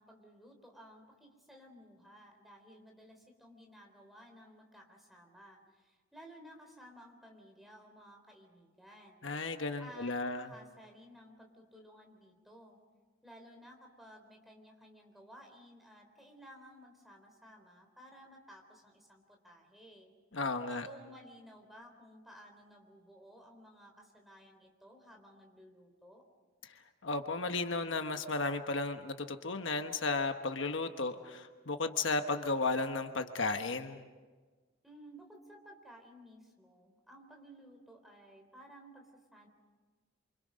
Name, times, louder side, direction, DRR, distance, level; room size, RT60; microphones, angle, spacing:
voice 1, 0.0-9.3 9.8-12.8 13.2-20.1 20.8-26.3 34.8-39.5, equal, ahead, 1 dB, 3.8 m, -56 dB
voice 2, 9.2-10.5 20.3-20.9 26.6-26.7 27.0-34.1, left 3 dB, 70° left, 6 dB, 1.3 m, -34 dB
28.0 x 25.5 x 5.2 m, 1.3 s
head